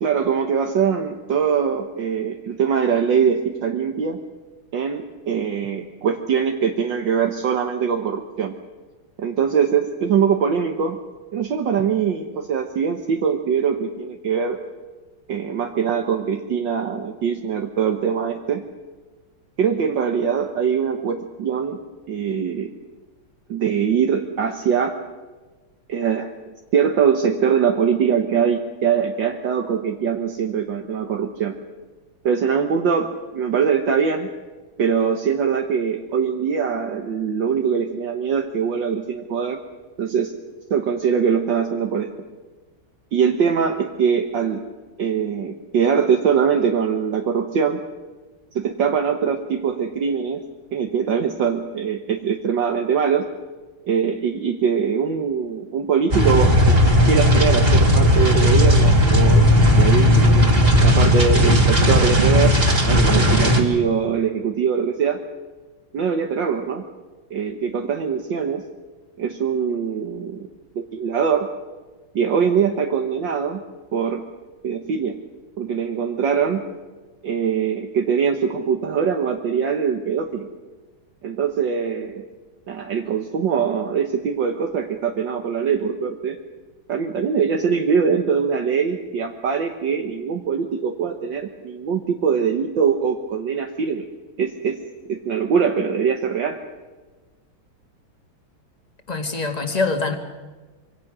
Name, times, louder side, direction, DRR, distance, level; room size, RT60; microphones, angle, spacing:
voice 1, 0.0-4.2 4.7-8.6 9.2-11.0 11.3-14.6 15.3-18.6 19.6-21.8 22.1-22.7 23.5-25.0 25.9-26.3 26.7-31.5 32.2-34.3 34.8-39.6 40.0-40.3 40.7-42.1 43.1-44.6 45.0-47.8 48.6-50.4 50.7-53.3 53.8-56.8 57.1-62.5 62.8-65.2 65.9-66.8 67.3-68.6 69.2-70.5 70.8-71.5 72.2-73.6 73.9-74.3 74.6-75.2 75.6-76.6 77.2-80.5 81.2-82.2 82.7-86.4 86.9-94.0 94.4-94.8 95.1-96.6, right 7 dB, 65° right, 3 dB, 1.9 m, -22 dB
sound 1, 56.1-63.6, equal, 30° right, 2.7 m, -15 dB
voice 2, 99.1-100.2, left 3 dB, 20° left, 5 dB, 2.1 m, -24 dB
25.5 x 23.5 x 6.2 m, 1.3 s
omnidirectional pair, 2.2 m